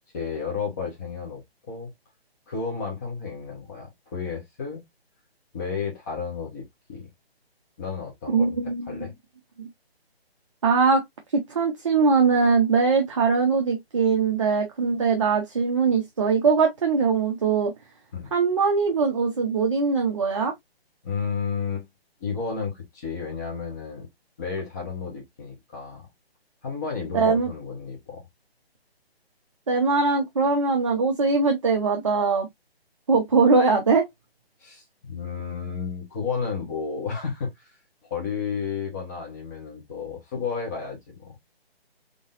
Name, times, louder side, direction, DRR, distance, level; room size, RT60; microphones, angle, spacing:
voice 1, 0.1-1.9 2.5-4.8 5.5-6.6 6.9-7.1 7.8-8.6 8.9-9.1 18.1-18.3 21.0-21.9 22.2-24.1 24.4-26.1 26.6-28.3 34.6-37.7 38.1-41.3, left 5 dB, 15° left, 1.1 m, -32 dB
voice 2, 8.3-9.0 10.6-11.0 11.3-17.7 18.3-20.5 27.1-27.5 29.7-32.5 33.1-34.1, right 4 dB, 30° right, 0.7 m, -21 dB
3.8 x 3.5 x 2.5 m
hypercardioid pair, 165°, 32 cm